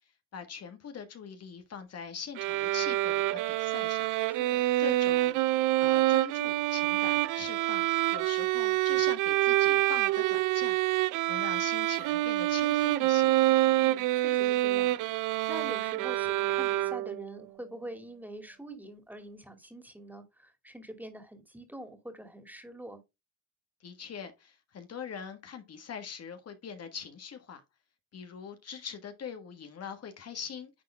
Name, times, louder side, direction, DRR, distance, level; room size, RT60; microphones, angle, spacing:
voice 1, 0.3-4.1 4.8-5.4 5.8-10.7 11.3-13.4 23.8-27.6 28.1-30.7, left 7 dB, 55° left, 1.6 m, -42 dB
sound 1, 2.4-17.3, right 16 dB, 90° right, 0.5 m, -27 dB
voice 2, 4.3-4.6 13.7-23.0, right 1 dB, 5° right, 2.5 m, -45 dB
10.5 x 3.8 x 3.5 m
cardioid pair, 90°, 30 cm